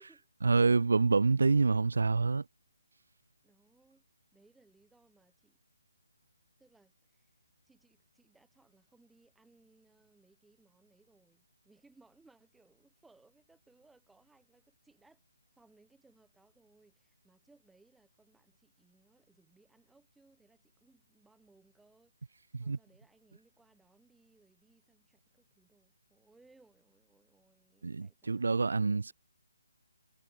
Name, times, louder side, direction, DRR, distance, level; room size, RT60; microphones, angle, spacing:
voice 1, 0.4-2.4 22.5-22.8 27.8-29.1, right 4 dB, 70° right, 0.4 m, -27 dB
voice 2, 3.4-4.0 4.3-5.6 6.6-7.3 7.7-15.2 15.6-22.1 22.6-29.1, right 3 dB, 5° right, 5.9 m, -66 dB
figure-of-eight pair, 150°, 0 cm